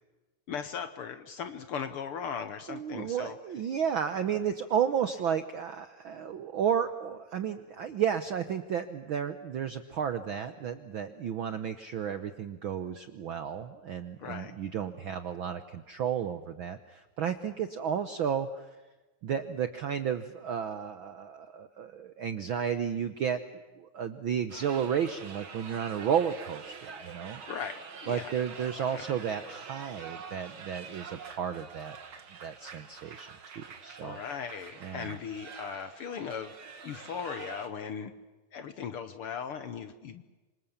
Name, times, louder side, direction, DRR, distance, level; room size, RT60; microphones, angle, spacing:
voice 1, 0.5-3.4 14.2-14.5 27.5-28.3 28.8-29.0 34.0-36.5 36.8-38.1 38.5-40.3, left 7 dB, 60° left, 10 dB, 1.6 m, -38 dB
voice 2, 2.7-18.7 19.2-23.4 23.8-27.4 28.1-32.0 32.4-34.2 34.8-35.2, right 8 dB, 70° right, 10 dB, 1.2 m, -32 dB
sound 1, 24.5-37.7, right 6 dB, 45° right, 2.3 m, -46 dB
26.5 x 25.5 x 7.2 m, 1.2 s
omnidirectional pair, 3.4 m